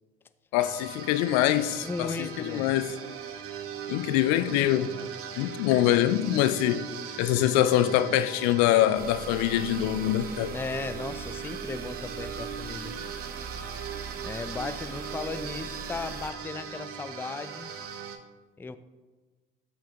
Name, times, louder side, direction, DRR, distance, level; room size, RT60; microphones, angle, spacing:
voice 1, 0.5-2.9 3.9-4.9 5.4-6.8 7.2-10.6, left 13 dB, 65° left, 0.5 m, -24 dB
sound 1, 0.6-18.2, right 7 dB, 50° right, 1.0 m, -39 dB
voice 2, 1.8-2.7 10.5-12.9 14.2-17.7 18.6-18.8, left 4 dB, 10° left, 0.4 m, -36 dB
sound 2, 9.0-16.3, right 5 dB, 30° right, 0.6 m, -41 dB
13.5 x 5.7 x 2.9 m
hypercardioid pair, 55°, 30 cm